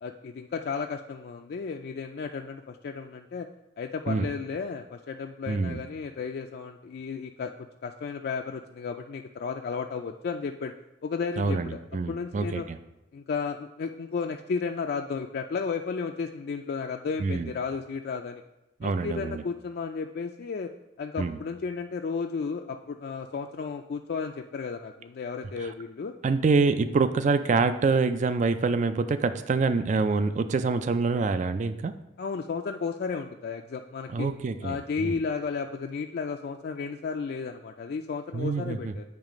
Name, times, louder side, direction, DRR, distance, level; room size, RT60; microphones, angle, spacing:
voice 1, 0.0-3.5 3.8-7.5 7.8-10.7 11.0-11.8 12.1-12.7 13.1-18.4 18.8-20.7 21.0-26.1 32.2-34.3 34.6-39.0, left 5 dB, 55° left, 3 dB, 0.3 m, -33 dB
voice 2, 5.5-5.8 11.4-12.8 17.2-17.5 18.8-19.4 21.2-21.4 25.6-25.7 26.2-31.9 34.1-35.2 38.3-38.9, right 4 dB, 40° right, 10 dB, 0.3 m, -26 dB
8.8 x 3.2 x 5.0 m, 0.95 s
head